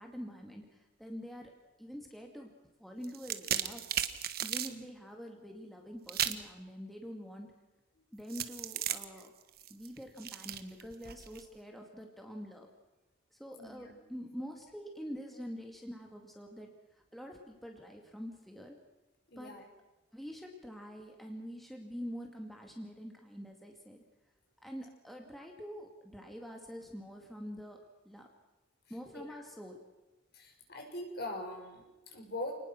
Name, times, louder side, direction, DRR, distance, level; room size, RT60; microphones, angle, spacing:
voice 1, 0.0-1.5 1.8-2.5 2.8-3.9 4.4-7.5 8.1-9.3 9.7-12.7 13.3-18.8 19.4-19.5 20.1-24.1 24.6-28.3 28.9-29.8, equal, ahead, 1 dB, 2.2 m, -46 dB
sound 1, 3.0-4.7 6.1-6.5 8.3-11.4, right 10 dB, 55° right, 1.3 m, -36 dB
voice 2, 13.6-13.9 19.3-19.6 29.1-29.4 30.3-32.5, left 1 dB, 55° left, 2 dB, 6.0 m, -42 dB
28.5 x 19.5 x 6.1 m, 1.0 s
head